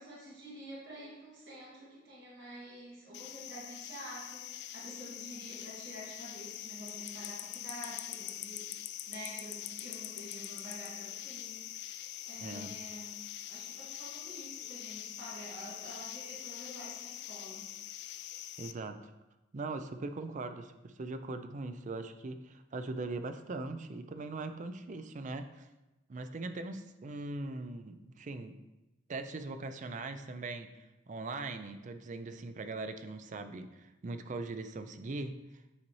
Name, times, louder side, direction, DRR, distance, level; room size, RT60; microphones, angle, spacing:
voice 1, 0.0-11.9 12.3-13.2 13.4-17.7, right 1 dB, 70° right, -7 dB, 1.9 m, -48 dB
sound 1, 3.1-18.7, left 12 dB, 60° left, 0.3 m, -44 dB
voice 2, 12.4-12.7 18.6-19.1 19.5-25.7 26.1-28.5 29.1-35.3, right 3 dB, 40° right, 9 dB, 0.4 m, -40 dB
8.5 x 4.2 x 3.1 m, 1.0 s
head